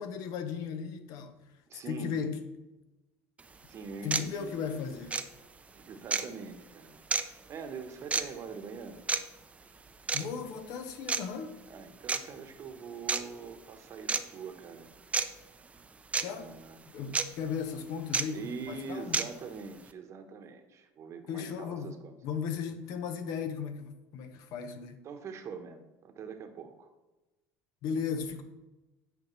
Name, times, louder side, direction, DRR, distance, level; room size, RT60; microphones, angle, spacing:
voice 1, 0.0-1.4 1.9-2.4 4.0-5.2 10.1-11.6 16.2-16.6 16.9-19.2 21.3-21.9 22.2-25.0 27.8-28.4, left 6 dB, 70° left, 9 dB, 0.8 m, -36 dB
voice 2, 1.7-2.3 3.7-4.8 5.8-9.0 11.7-14.9 16.2-16.8 18.3-22.1 25.0-26.9, right 5 dB, 45° right, 7 dB, 1.0 m, -43 dB
sound 1, 3.4-3.5 4.1-4.3 5.1-5.3 6.1-6.3 7.1-7.2 8.1-8.3 9.1-9.2 10.1-10.3 11.1-11.2 12.1-12.2 13.1-13.2 14.1-14.2 15.1-15.3 16.1-16.2 17.1-17.3 18.1-18.2 19.1-19.3, right 4 dB, 20° right, 0.5 m, -28 dB
9.1 x 5.2 x 3.2 m, 1.1 s
supercardioid pair, 100°, 7 cm